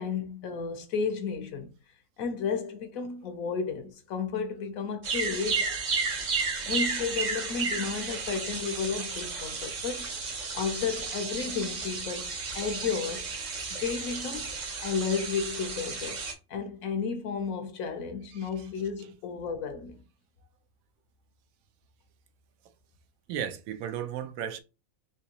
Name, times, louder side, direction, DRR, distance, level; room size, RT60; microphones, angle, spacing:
voice 1, 0.0-1.7 2.2-5.7 6.6-10.1 10.5-13.3 13.7-14.5 14.8-16.2 16.5-20.0, left 5 dB, 90° left, 1.2 m, -33 dB
sound 1, 5.0-16.3, right 4 dB, 45° right, 0.6 m, -33 dB
voice 2, 23.3-24.6, right 9 dB, 85° right, 1.0 m, -34 dB
3.5 x 2.8 x 2.9 m
omnidirectional pair, 1.4 m